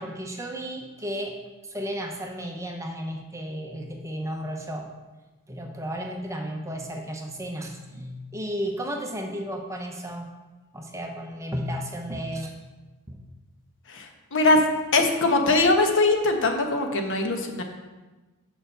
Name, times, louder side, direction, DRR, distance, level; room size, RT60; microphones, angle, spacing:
voice 1, 0.0-1.4 1.7-4.9 5.5-10.3 10.7-12.5 13.1-13.2, equal, 15° right, 2 dB, 0.8 m, -33 dB
voice 2, 13.9-14.6 14.9-17.6, left 2 dB, 55° left, 4 dB, 1.0 m, -21 dB
6.9 x 5.0 x 6.7 m, 1.2 s
head